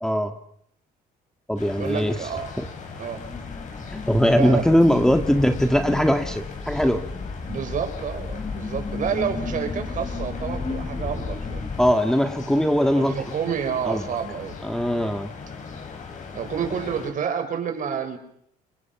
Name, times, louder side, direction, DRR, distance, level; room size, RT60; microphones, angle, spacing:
voice 1, 0.0-0.3 1.5-2.2 2.6-2.7 3.9-7.0 11.8-13.1 13.9-14.0 14.6-15.3, equal, 5° left, 7 dB, 1.8 m, -20 dB
sound 1, 1.5-17.1, left 5 dB, 45° left, 6.8 m, -40 dB
voice 2, 1.8-2.5 3.0-3.2 4.4-4.6 7.5-11.6 13.0-14.6 16.3-18.2, right 7 dB, 50° right, 7 dB, 5.0 m, -29 dB
sound 2, 3.2-11.9, left 4 dB, 25° left, 4.2 m, -33 dB
28.5 x 23.0 x 6.0 m, 0.70 s
cardioid pair, 110°, 17 cm